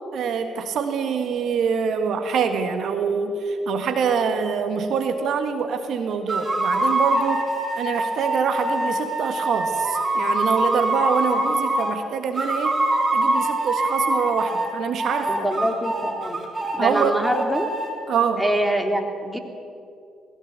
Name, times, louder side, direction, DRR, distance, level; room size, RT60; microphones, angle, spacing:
voice 1, 0.1-7.5 7.7-12.8 13.1-15.5 16.8-17.2 18.1-18.4, right 6 dB, 65° right, 7 dB, 1.6 m, -25 dB
sound 1, 6.3-12.0 12.3-14.7 15.0-17.9, right 2 dB, 30° right, 5.1 m, -24 dB
voice 2, 15.3-16.4 16.7-17.7 18.4-19.4, right 1 dB, ahead, 4 dB, 3.1 m, -24 dB
20.0 x 16.0 x 8.2 m, 2.6 s
hypercardioid pair, 55°, 0 cm